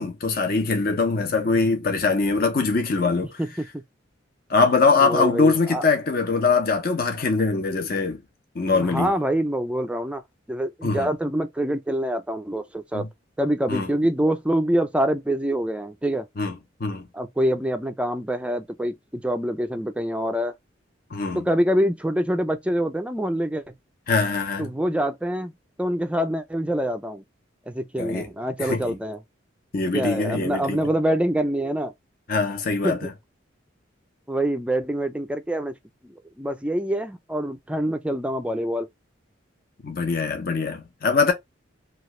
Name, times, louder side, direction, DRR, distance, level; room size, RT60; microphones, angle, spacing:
voice 1, 0.0-3.3 4.5-8.2 8.6-9.1 10.8-11.1 12.9-13.1 13.7-13.9 16.4-16.5 16.8-17.0 21.1-21.4 24.1-24.7 28.0-28.3 28.6-28.8 29.7-30.8 32.3-33.1 39.8-41.3, left 4 dB, 50° left, 0.7 m, -22 dB
voice 2, 5.0-5.8 8.7-10.2 10.5-13.1 13.4-16.3 17.1-20.5 21.3-23.6 24.6-25.5 25.8-27.2 27.7-29.2 29.9-31.9 32.8-33.1 34.3-35.7 36.0-38.9, equal, 5° right, 0.3 m, -25 dB
3.1 x 2.4 x 3.0 m
head